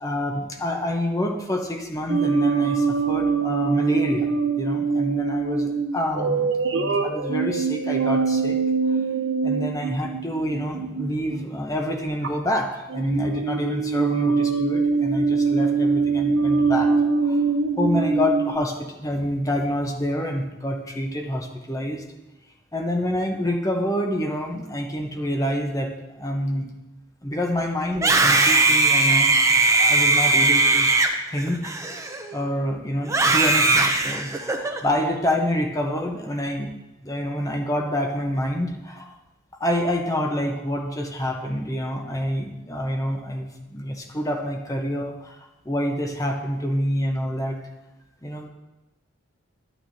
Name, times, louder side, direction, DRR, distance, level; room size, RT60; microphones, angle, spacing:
voice 1, 0.0-4.3 4.6-8.6 9.4-16.9 17.2-17.4 17.8-22.0 22.7-25.9 26.2-26.7 27.2-29.3 29.7-30.9 31.3-31.7 32.3-36.7 37.0-39.1 39.6-45.4 45.6-47.6 48.2-48.5, equal, 15° left, 2 dB, 0.9 m, -27 dB
sound 1, 2.1-11.5 12.2-12.6 12.9-18.6, right 4 dB, 65° right, 0.7 m, -23 dB
Screaming, 27.9-32.4 33.1-34.8, right 2 dB, 15° right, 0.6 m, -19 dB
11.0 x 9.0 x 2.8 m, 1.0 s
head